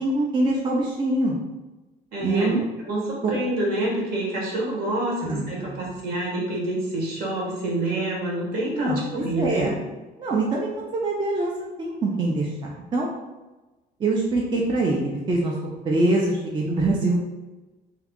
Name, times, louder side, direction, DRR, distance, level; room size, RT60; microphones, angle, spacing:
voice 1, 0.0-1.4 2.2-2.7 5.2-5.9 8.7-9.7 10.2-12.5 12.9-13.1 14.0-15.5 15.8-17.2, right 2 dB, 30° right, -2 dB, 0.4 m, -24 dB
voice 2, 2.1-2.5 2.8-9.7, right 1 dB, 65° right, -4 dB, 1.2 m, -27 dB
2.7 x 2.3 x 3.6 m, 1.1 s
cardioid pair, 110°, 17 cm